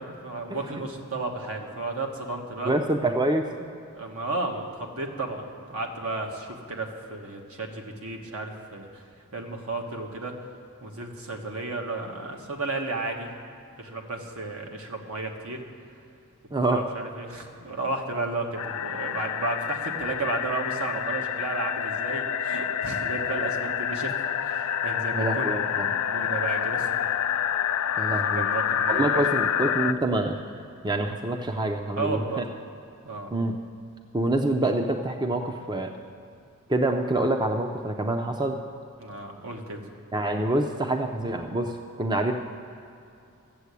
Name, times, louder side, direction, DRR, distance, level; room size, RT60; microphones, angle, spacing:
voice 1, 0.2-2.7 3.9-9.0 9.3-10.3 10.8-13.3 13.8-15.6 16.7-24.1 24.4-26.9 28.2-29.2 31.9-32.4 33.0-33.3 39.0-39.8, right 2 dB, 75° right, 2 dB, 1.6 m, -33 dB
voice 2, 2.6-3.5 16.5-16.8 25.1-25.9 28.0-28.5 28.9-30.4 30.8-32.4 33.3-33.6 34.1-35.9 36.7-38.6 40.1-42.3, right 2 dB, 20° right, 4 dB, 0.5 m, -26 dB
sound 1, 18.6-29.9, left 9 dB, 80° left, 0.5 m, -28 dB
14.0 x 7.4 x 8.3 m, 2.7 s
head